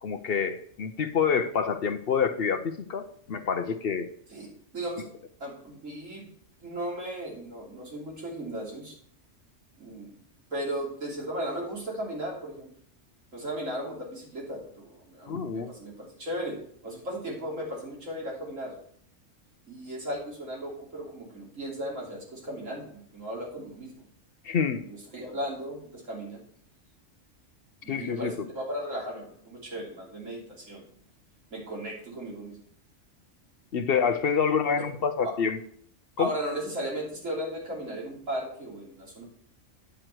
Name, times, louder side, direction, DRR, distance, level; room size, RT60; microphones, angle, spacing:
voice 1, 0.0-4.1 15.3-15.7 24.4-24.8 27.9-28.3 33.7-35.6 36.2-36.3, left 6 dB, 55° left, 9 dB, 0.8 m, -27 dB
voice 2, 4.7-5.1 5.4-6.3 6.6-8.9 9.8-10.1 10.5-12.7 13.3-16.6 16.8-18.7 19.7-23.9 24.9-26.4 27.8-30.8 31.5-32.6 36.2-39.2, right 1 dB, 85° right, -4 dB, 3.6 m, -36 dB
10.0 x 7.8 x 4.5 m, 0.62 s
omnidirectional pair, 1.3 m